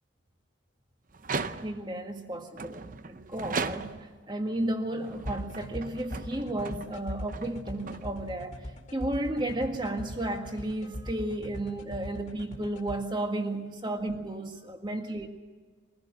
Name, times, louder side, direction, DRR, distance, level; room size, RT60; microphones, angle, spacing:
sound 1, 1.1-2.0 2.6-4.2 4.9-8.5, right 4 dB, 40° right, 0.7 m, -38 dB
voice 1, 1.3-15.3, right 1 dB, 20° right, 4 dB, 1.8 m, -33 dB
sound 2, 5.3-13.0, equal, 35° left, 2.3 m, -39 dB
23.0 x 16.0 x 7.7 m, 1.5 s
head